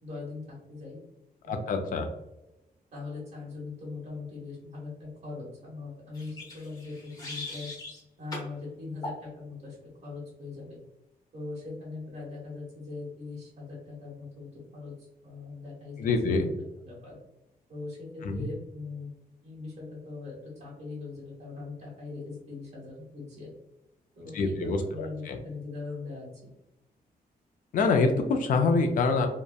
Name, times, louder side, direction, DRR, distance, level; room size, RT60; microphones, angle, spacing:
voice 1, 0.0-1.0 1.4-1.6 2.9-9.8 10.0-10.8 11.3-14.9 15.2-16.4 16.8-17.2 17.7-19.1 19.4-23.5 24.1-26.5, left 3 dB, 45° right, -5 dB, 1.1 m, -41 dB
voice 2, 1.5-2.1 16.0-16.5 18.2-18.5 24.3-25.4 27.7-29.3, left 4 dB, 60° left, 5 dB, 0.4 m, -26 dB
sound 1, 6.1-8.0 8.3-8.5 9.0-9.2, left 2 dB, 25° left, 0.8 m, -40 dB
2.7 x 2.1 x 2.2 m, 0.91 s
wide cardioid pair, 135°, 16 cm